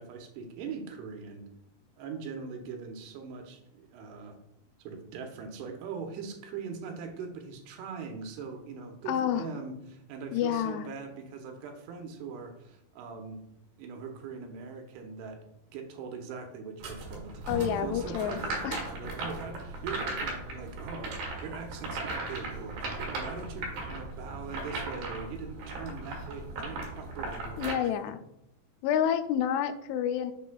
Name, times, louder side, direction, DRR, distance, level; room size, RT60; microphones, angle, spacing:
voice 1, 0.0-1.4 2.0-4.4 4.8-13.4 13.8-15.4 15.7-27.9, right 5 dB, 80° right, 4 dB, 3.0 m, -41 dB
voice 2, 9.1-9.5 10.3-10.8 17.5-18.9 27.6-28.2 28.8-30.3, left 9 dB, 85° left, 9 dB, 2.6 m, -29 dB
sound 1, 16.8-27.7, right 2 dB, 65° right, 3.3 m, -37 dB
Bowed string instrument, 17.5-20.6, right 1 dB, 35° left, 1.5 m, -44 dB
7.1 x 6.0 x 2.3 m, 0.80 s
omnidirectional pair, 4.7 m